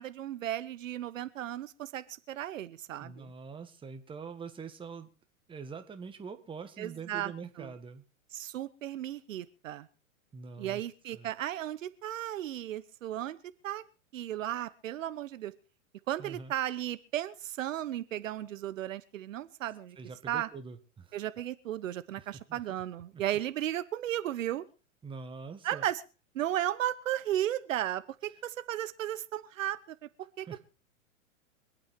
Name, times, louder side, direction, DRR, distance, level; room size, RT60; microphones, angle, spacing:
voice 1, 0.0-3.3 6.8-7.3 7.6-7.7 8.3-9.9 10.6-13.4 13.6-13.8 14.1-15.5 16.1-20.0 20.3-20.5 21.1-24.6 25.6-26.0 26.3-29.8 30.4-30.5, right 12 dB, 65° right, 14 dB, 1.1 m, -35 dB
voice 2, 3.0-5.1 5.5-8.0 10.3-10.8 11.1-11.3 16.2-16.5 19.9-21.2 22.2-22.6 23.1-23.2 25.0-25.8 30.4-30.6, right 5 dB, 10° right, 7 dB, 1.5 m, -44 dB
25.0 x 8.9 x 4.5 m, 0.34 s
hypercardioid pair, 120°, 41 cm